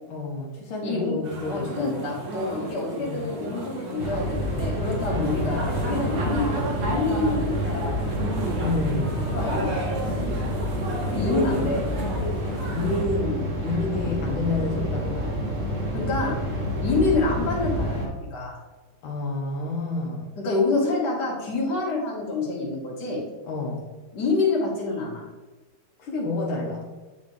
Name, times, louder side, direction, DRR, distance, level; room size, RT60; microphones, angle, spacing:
voice 1, 0.1-2.1 3.0-3.3 5.1-5.5 8.6-9.2 11.1-11.7 12.7-15.4 19.0-20.3 23.5-23.8 26.0-26.9, left 2 dB, 85° left, -1 dB, 1.6 m, -29 dB
voice 2, 0.8-1.2 1.5-6.5 6.8-7.9 9.3-9.9 11.0-11.8 13.1-13.3 15.9-16.4 16.8-18.6 20.4-23.2 24.1-25.2, left 3 dB, 60° left, -4 dB, 2.2 m, -27 dB
sound 1, 1.2-13.0, right 2 dB, 70° right, 2.0 m, -34 dB
sound 2, 3.4-7.8, right 2 dB, 25° right, 2.4 m, -40 dB
sound 3, 4.0-18.1, equal, 45° right, 1.5 m, -28 dB
8.4 x 4.2 x 3.2 m, 1.2 s
omnidirectional pair, 2.1 m